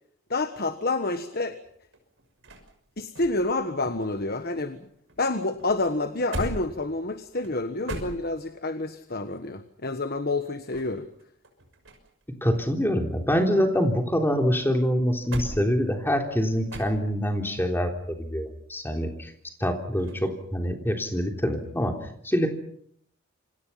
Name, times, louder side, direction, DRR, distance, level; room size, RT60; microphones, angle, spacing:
voice 1, 0.3-1.6 3.0-4.9 5.2-11.1, left 2 dB, 45° left, 9 dB, 1.4 m, -28 dB
sound 1, 1.6-4.8 5.1-8.7 10.4-12.2 12.5-14.3 14.7-17.4 20.0-20.3, right 1 dB, 60° right, 6.1 m, -40 dB
voice 2, 12.4-19.3 19.6-22.0 22.2-22.5, equal, 10° left, 3 dB, 3.5 m, -25 dB
28.0 x 26.0 x 5.8 m, 0.67 s
head